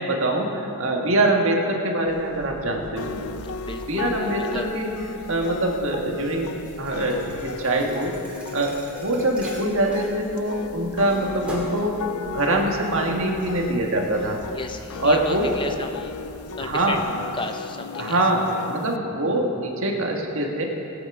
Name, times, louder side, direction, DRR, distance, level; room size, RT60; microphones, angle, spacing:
voice 1, 0.0-3.3 3.9-4.9 5.3-12.0 12.3-14.4 15.0-15.6 16.6-17.0 18.0-20.7, right 1 dB, 65° right, 1 dB, 1.7 m, -24 dB
sound 1, 2.0-17.2, equal, 30° right, 1.9 m, -45 dB
sound 2, 3.0-19.0, left 5 dB, 80° left, 0.4 m, -36 dB
voice 2, 3.6-4.7 14.5-16.1 16.6-17.0 17.3-18.2, left 3 dB, 20° left, 6 dB, 0.6 m, -33 dB
Thump thud, 6.6-10.7 11.1-11.9, equal, 5° right, 2.1 m, -40 dB
19.5 x 8.7 x 4.9 m, 2.9 s
head